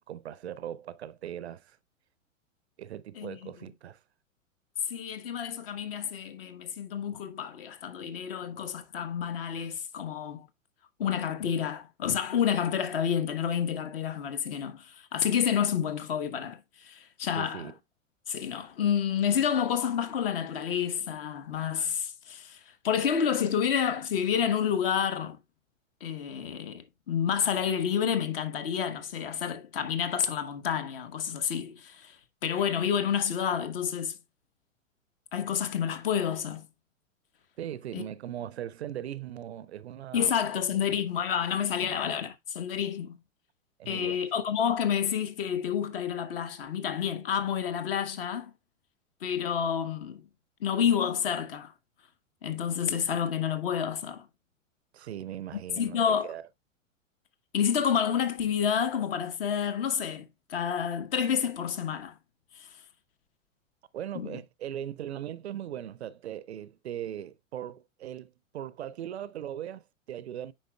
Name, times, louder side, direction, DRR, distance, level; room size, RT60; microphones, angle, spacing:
voice 1, 0.0-1.8 2.8-4.0 17.4-17.7 37.6-40.3 40.7-41.0 43.8-44.2 54.9-56.0 56.2-56.4 63.9-70.5, right 11 dB, 55° right, 0.5 m, -39 dB
voice 2, 3.2-3.5 4.9-10.5 11.0-17.7 18.3-25.4 26.0-34.2 35.3-36.6 37.9-38.0 40.1-43.2 43.9-48.5 49.2-50.2 50.6-51.7 52.4-54.3 55.8-56.3 57.5-62.2 62.5-62.8 64.1-64.4, left 8 dB, 45° left, 1.0 m, -29 dB
8.6 x 5.2 x 2.2 m
figure-of-eight pair, 105°, 40 cm